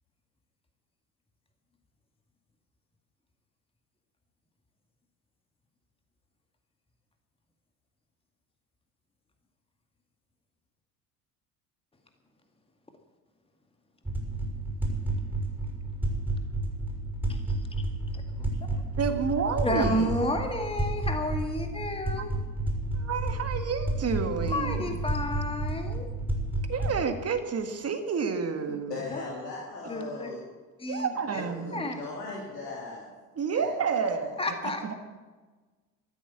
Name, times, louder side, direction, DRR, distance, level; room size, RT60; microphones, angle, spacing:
sound 1, 14.1-27.0, right 2 dB, 5° right, 6.1 m, -31 dB
voice 1, 17.3-17.7 18.1-18.4 18.7-18.8 19.6-22.3 24.5-26.1 28.7-28.8 29.1-29.2 29.9-30.3 30.8-31.4 31.7-32.0 34.4-34.9, left 1 dB, 10° left, 4 dB, 2.1 m, -31 dB
voice 2, 19.0-20.1 22.9-24.9 26.7-29.0 30.9-31.9 33.4-34.5 34.8-34.9, right 6 dB, 30° right, 7 dB, 1.9 m, -30 dB
voice 3, 28.9-30.4 31.1-33.1 33.5-33.7, left 3 dB, 80° left, -4 dB, 3.0 m, -38 dB
14.5 x 13.0 x 7.1 m, 1.3 s
figure-of-eight pair, 65°, 47 cm